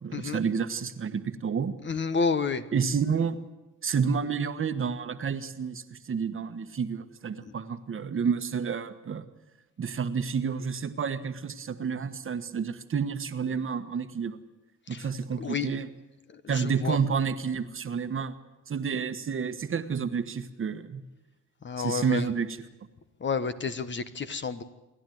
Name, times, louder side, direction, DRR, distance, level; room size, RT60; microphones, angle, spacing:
voice 1, 0.0-1.7 2.7-3.4 3.8-9.2 9.8-14.4 14.9-15.9 16.5-18.3 18.7-21.0 21.8-22.6, right 6 dB, 45° right, 10 dB, 1.4 m, -30 dB
voice 2, 1.8-2.6 14.9-15.0 15.4-15.7 16.4-16.5 16.8-17.0 21.6-22.2 23.2-24.6, left 5 dB, 40° left, 11 dB, 1.3 m, -29 dB
28.0 x 11.5 x 9.4 m, 1.0 s
cardioid pair, 90°, 30 cm